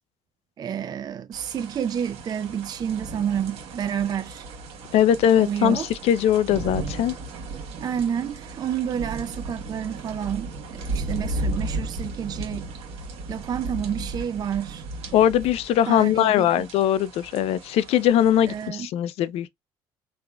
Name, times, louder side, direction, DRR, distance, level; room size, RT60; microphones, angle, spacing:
voice 1, 0.6-4.5 5.4-5.9 7.8-12.7 13.3-14.8 15.9-16.7 18.4-18.9, right 8 dB, 35° right, 0.4 m, -29 dB
sound 1, 1.3-18.7, right 2 dB, 70° right, 1.2 m, -35 dB
voice 2, 4.9-7.1 15.1-19.5, left 10 dB, 65° left, 0.4 m, -21 dB
3.3 x 2.4 x 2.2 m
supercardioid pair, 90°, 11 cm